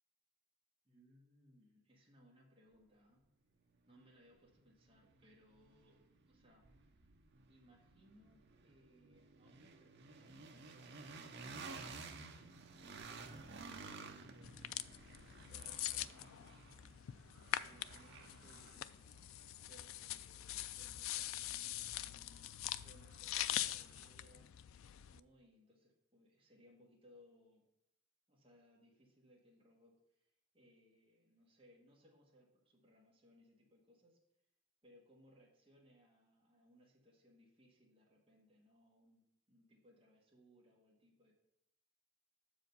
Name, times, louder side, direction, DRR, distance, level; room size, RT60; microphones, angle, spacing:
voice 1, 0.8-3.3 3.9-6.7 7.5-11.0 13.1-16.9 17.5-19.1 19.7-24.5 25.1-27.7 28.3-34.2 34.8-41.3, equal, 25° right, -4 dB, 1.4 m, -67 dB
sound 1, 4.0-4.1 4.5-20.5, right 4 dB, 55° right, 0.7 m, -54 dB
sound 2, 14.4-25.2, left 13 dB, 80° left, 0.3 m, -44 dB
sound 3, 15.1-24.5, right 3 dB, 85° right, 1.6 m, -71 dB
7.0 x 5.0 x 5.4 m, 0.82 s
head